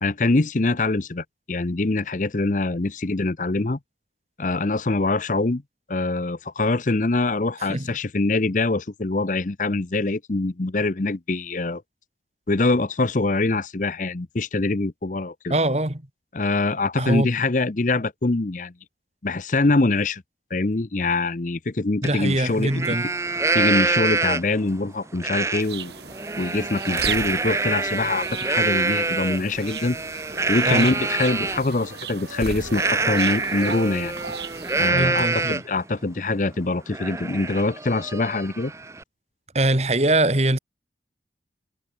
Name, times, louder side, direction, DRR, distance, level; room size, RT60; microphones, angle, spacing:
voice 1, 0.0-3.8 4.4-5.6 5.9-11.8 12.5-15.6 16.3-18.7 19.2-20.2 20.5-22.8 23.5-25.9 26.4-30.0 30.5-34.2 34.8-38.7, left 2 dB, 45° left, 0.8 m, -24 dB
voice 2, 15.5-16.0 17.0-17.3 22.0-23.1 30.7-30.9 34.9-35.6 39.5-40.6, right 1 dB, 35° right, 2.4 m, -22 dB
sound 1, 20.7-20.8 21.8-27.1, equal, 65° left, 5.3 m, -52 dB
Livestock farm animals working animals, 22.0-22.1 22.5-24.6 25.2-25.6 26.0-31.6 32.7-35.8 36.2-36.3 36.7-39.0, right 3 dB, 15° right, 0.6 m, -25 dB
sound 2, 25.6-34.9, right 5 dB, 70° right, 6.3 m, -36 dB
head